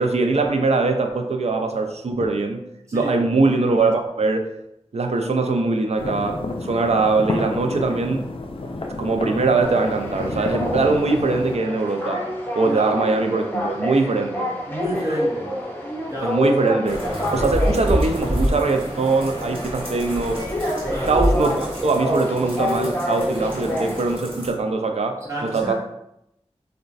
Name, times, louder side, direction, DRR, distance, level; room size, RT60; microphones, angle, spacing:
voice 1, 0.0-2.7 2.9-4.5 4.9-8.3 9.0-12.3 12.5-14.5 16.2-17.0 17.3-20.4 20.9-25.7, right 3 dB, 70° right, 4 dB, 0.4 m, -22 dB
sound 1, 6.0-11.6, left 2 dB, 50° left, 0.4 m, -30 dB
sound 2, 9.6-24.1, equal, 15° left, 0.8 m, -28 dB
voice 2, 14.7-15.5 16.0-16.4 20.8-21.1 25.3-25.7, equal, 25° right, -4 dB, 1.1 m, -29 dB
sound 3, 16.9-24.5, equal, 50° right, 1.2 m, -28 dB
3.9 x 2.2 x 2.5 m, 0.82 s
wide cardioid pair, 50°, 11 cm